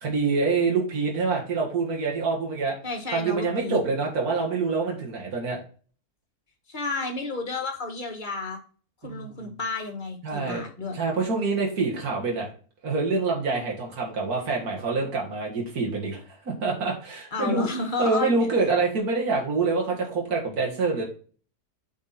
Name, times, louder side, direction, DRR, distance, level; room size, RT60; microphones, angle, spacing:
voice 1, 0.0-2.8 3.1-5.6 9.0-9.5 10.2-10.6 10.9-12.5 12.8-17.7 18.0-21.0, right 4 dB, 85° right, -1 dB, 2.3 m, -26 dB
voice 2, 2.8-3.8 6.7-8.6 9.0-11.0 17.3-18.5, left 3 dB, 35° left, 4 dB, 1.6 m, -31 dB
8.3 x 4.9 x 4.2 m, 0.41 s
omnidirectional pair, 1.6 m